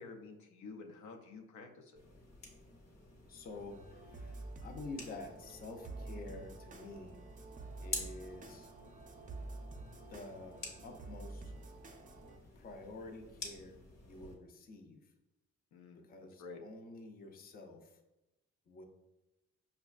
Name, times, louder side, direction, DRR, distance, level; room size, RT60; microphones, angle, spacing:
voice 1, 0.0-2.0 15.7-16.0 16.4-16.6, left 4 dB, 75° left, 2 dB, 0.6 m, -50 dB
sound 1, 2.0-14.4, left 3 dB, 60° left, 1.0 m, -50 dB
voice 2, 3.3-7.2 7.8-8.7 10.1-11.5 12.6-13.8 14.0-15.1 16.0-18.0 18.7-18.9, left 2 dB, 30° left, 4 dB, 0.5 m, -49 dB
sound 2, 3.5-12.4, right 2 dB, 25° right, 0.4 m, -49 dB
5.0 x 2.2 x 2.3 m, 0.97 s
cardioid pair, 90°, 30 cm